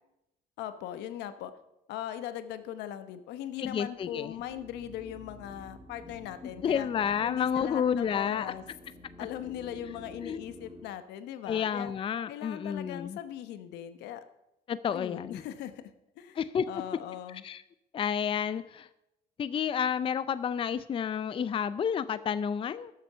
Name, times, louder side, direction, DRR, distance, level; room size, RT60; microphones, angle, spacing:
voice 1, 0.6-1.5 1.9-6.9 7.2-8.6 9.2-11.9 12.3-14.2 14.9-16.4 16.7-17.4, left 11 dB, 85° left, 11 dB, 0.9 m, -39 dB
voice 2, 3.6-4.3 6.6-8.5 10.2-10.4 11.5-13.2 14.7-15.4 16.4-16.7 17.4-17.6 17.9-18.9 19.4-22.9, left 8 dB, 30° left, 15 dB, 0.5 m, -30 dB
sound 1, 3.9-10.9, equal, 20° right, 2.0 m, -50 dB
13.0 x 7.7 x 5.6 m, 0.87 s
cardioid pair, 110°, 17 cm